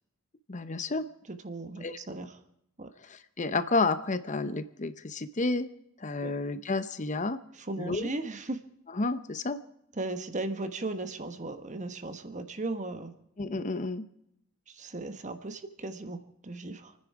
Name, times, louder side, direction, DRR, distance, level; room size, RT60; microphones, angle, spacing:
voice 1, 0.5-1.1 1.8-2.0 3.0-5.7 6.0-7.4 7.8-8.1 8.9-9.6 13.4-14.0, left 3 dB, 35° left, 12 dB, 0.7 m, -30 dB
voice 2, 1.3-2.4 2.8-2.9 6.2-6.3 7.5-8.6 9.9-13.1 14.7-17.0, right 2 dB, 35° right, 9 dB, 1.2 m, -37 dB
28.5 x 9.9 x 4.8 m, 0.77 s
head